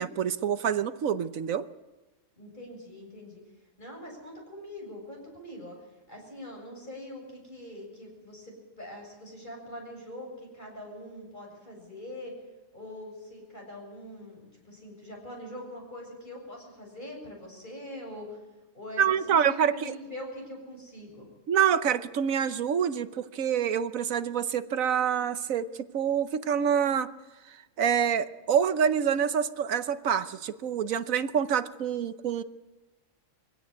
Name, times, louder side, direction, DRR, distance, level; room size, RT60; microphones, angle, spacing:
voice 1, 0.0-1.7 19.0-19.9 21.5-25.7 25.9-27.1 27.8-32.4, right 8 dB, 85° right, 12 dB, 1.3 m, -26 dB
voice 2, 2.4-3.4 3.8-5.8 6.1-12.4 12.7-18.4 18.7-21.3, left 1 dB, 35° left, 0 dB, 7.6 m, -43 dB
23.5 x 16.5 x 8.4 m, 1.1 s
omnidirectional pair, 1.4 m